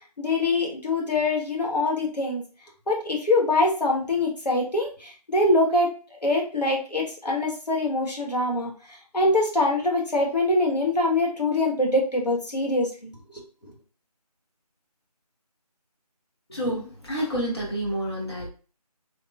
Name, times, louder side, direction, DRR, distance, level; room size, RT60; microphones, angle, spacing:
voice 1, 0.2-2.4 2.9-8.7 9.1-13.1, left 2 dB, 85° left, -2 dB, 1.1 m, -24 dB
voice 2, 16.5-18.5, equal, 40° left, -3 dB, 0.9 m, -29 dB
2.9 x 2.0 x 2.3 m, 0.37 s
figure-of-eight pair, 165°, 20 cm